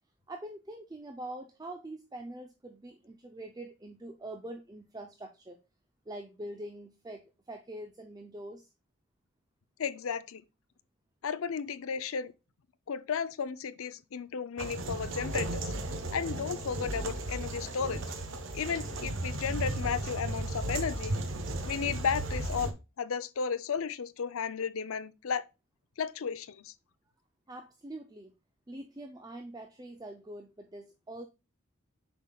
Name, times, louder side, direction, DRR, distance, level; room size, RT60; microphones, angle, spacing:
voice 1, 0.3-5.6 6.1-8.7 27.5-28.3 28.7-31.3, right 1 dB, 20° right, 0.5 m, -44 dB
voice 2, 9.8-10.4 11.2-12.3 12.9-15.7 16.1-18.0 18.5-21.1 21.6-25.4 26.0-26.7, left 6 dB, 80° left, 0.5 m, -34 dB
sound 1, 14.6-22.7, right 1 dB, 65° right, 1.0 m, -35 dB
7.2 x 5.7 x 2.3 m
head